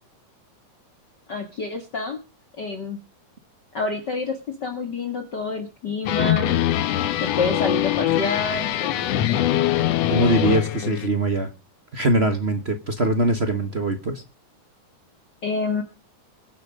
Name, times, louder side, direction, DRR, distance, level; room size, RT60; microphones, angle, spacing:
voice 1, 1.3-2.2 2.6-3.0 3.7-6.5 7.2-9.4 15.4-15.8, left 4 dB, 40° left, 2.2 m, -28 dB
sound 1, 6.1-11.1, left 12 dB, 65° left, 1.9 m, -23 dB
voice 2, 10.1-11.5 11.9-14.2, right 2 dB, 45° right, 0.8 m, -22 dB
22.0 x 9.0 x 5.2 m
omnidirectional pair, 3.4 m